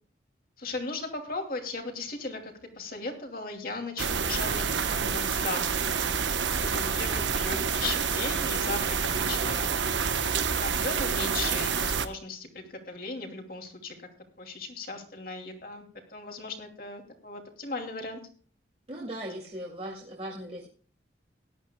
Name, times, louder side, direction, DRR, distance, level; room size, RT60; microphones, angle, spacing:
voice 1, 0.6-6.2 6.6-9.8 10.1-10.2 10.6-14.1 14.4-15.8 16.1-18.2, left 3 dB, 50° left, 3 dB, 2.7 m, -37 dB
sound 1, 4.0-12.1, right 6 dB, 90° right, 1.1 m, -28 dB
voice 2, 18.9-20.7, right 1 dB, 35° right, -3 dB, 2.2 m, -38 dB
18.0 x 12.0 x 2.3 m, 0.42 s
head